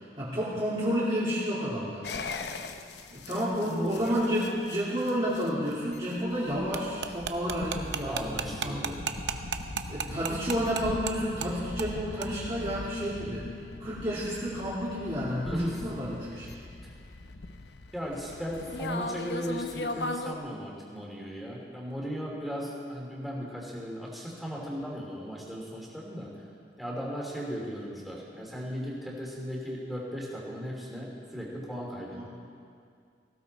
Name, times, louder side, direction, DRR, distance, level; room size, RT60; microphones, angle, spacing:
voice 1, 0.2-2.1 3.1-9.0 9.9-13.5 13.8-16.5 32.1-32.3, equal, 30° right, -10 dB, 2.5 m, -31 dB
sound 1, 2.0-20.3, left 2 dB, 75° left, 0.8 m, -40 dB
voice 2, 3.3-4.4 8.0-9.0 15.4-15.9 16.8-16.9 17.9-26.3 26.8-32.3, equal, ahead, -4 dB, 2.8 m, -36 dB
sound 2, 6.7-11.1 11.4-11.5 11.8-11.9 12.2-12.3, right 7 dB, 80° right, 0.8 m, -33 dB
18.5 x 16.0 x 4.2 m, 2.2 s
head